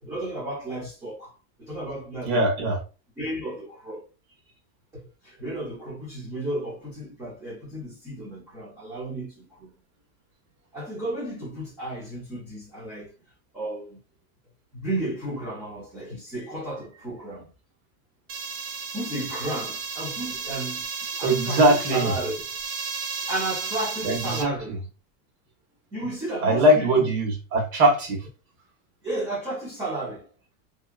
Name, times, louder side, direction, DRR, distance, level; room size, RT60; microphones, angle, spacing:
voice 1, 0.0-2.4 3.2-4.0 4.9-9.7 10.7-13.1 13.5-14.0 14.7-17.5 18.9-20.9 21.2-22.3 23.3-24.7 25.9-27.1 29.0-30.3, right 1 dB, 10° right, 0.6 m, -33 dB
voice 2, 2.3-2.8 21.2-22.1 24.0-24.8 26.4-28.2, right 1 dB, 55° right, 1.2 m, -21 dB
sound 1, 18.3-24.4, right 5 dB, 75° right, 1.0 m, -33 dB
2.8 x 2.3 x 2.3 m
supercardioid pair, 165°, 49 cm